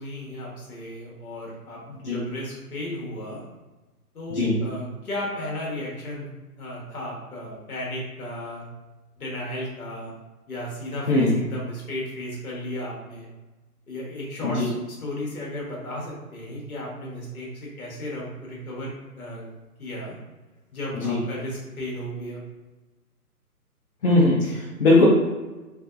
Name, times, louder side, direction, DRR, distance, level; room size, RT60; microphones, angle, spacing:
voice 1, 0.0-3.4 4.1-6.3 6.6-8.6 9.2-10.1 10.5-13.3 13.9-19.4 19.8-20.2 20.7-22.4, left 1 dB, 65° left, -4 dB, 1.4 m, -34 dB
voice 2, 11.1-11.4 14.4-14.6 21.0-21.2 24.0-25.0, left 2 dB, 45° left, -6 dB, 0.7 m, -19 dB
3.2 x 2.9 x 2.5 m, 1.2 s
figure-of-eight pair, 135°, 47 cm